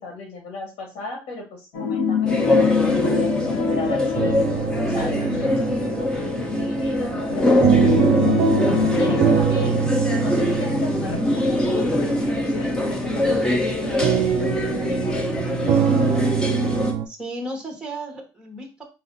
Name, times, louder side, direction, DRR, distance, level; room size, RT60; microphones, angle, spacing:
voice 1, 0.0-4.4 4.8-8.1 8.7-15.3, left 3 dB, 65° left, 1 dB, 2.0 m, -36 dB
sound 1, 1.7-6.1 6.5-6.6 7.3-9.4, left 5 dB, 90° left, 1.3 m, -24 dB
sound 2, 2.3-16.9, left 1 dB, 10° left, 0.6 m, -23 dB
sound 3, 4.1-17.1, right 9 dB, 40° right, 0.4 m, -25 dB
voice 2, 17.1-18.8, right 1 dB, 10° right, 3 dB, 1.0 m, -34 dB
4.3 x 2.5 x 3.7 m, 0.30 s
cardioid pair, 165°, 10 cm